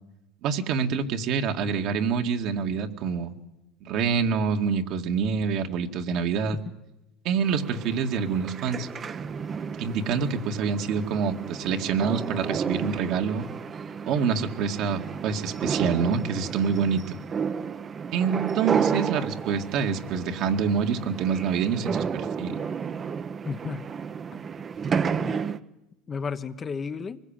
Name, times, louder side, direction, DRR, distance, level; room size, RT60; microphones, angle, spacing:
voice 1, 0.4-3.3 3.8-6.6 7.2-8.9 9.8-13.4 14.1-17.2 18.1-22.6, right 6 dB, 60° right, 4 dB, 2.1 m, -26 dB
sound 1, 7.4-25.6, right 6 dB, 30° right, 0.9 m, -32 dB
voice 2, 23.4-23.9 24.4-24.5 25.2-25.4 26.1-27.2, left 5 dB, 30° left, 10 dB, 1.1 m, -33 dB
24.5 x 21.0 x 9.0 m, 0.93 s
supercardioid pair, 105°, 0 cm